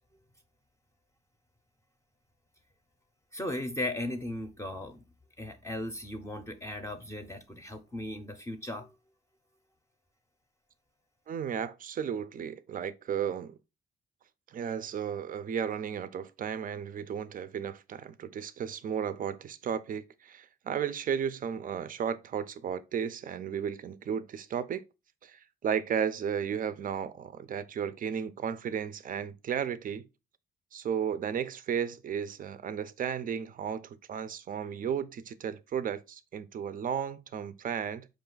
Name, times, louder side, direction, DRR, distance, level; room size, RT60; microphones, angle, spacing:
voice 1, 3.3-5.0 5.4-8.9, left 1 dB, 15° left, 0.6 m, -37 dB
voice 2, 11.3-13.6 14.5-24.8 25.2-30.1 30.7-38.1, right 8 dB, 45° right, 0.5 m, -34 dB
5.1 x 2.4 x 3.8 m
cardioid pair, 90°, 20 cm